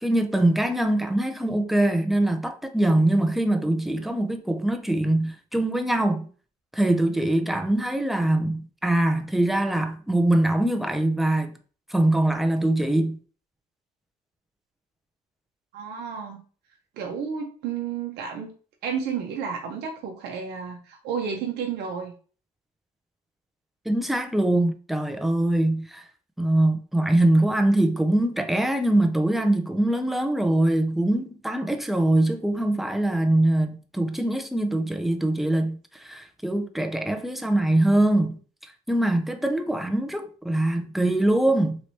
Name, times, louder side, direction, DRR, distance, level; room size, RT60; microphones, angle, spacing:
voice 1, 0.0-6.3 6.7-11.6 11.9-13.2 23.9-26.0 26.4-38.4 38.9-41.8, right 1 dB, ahead, 0.4 m, -23 dB
voice 2, 15.7-16.4 17.0-18.5 18.8-22.1, right 6 dB, 75° right, 0.7 m, -31 dB
3.2 x 2.9 x 2.8 m
cardioid pair, 110°, 17 cm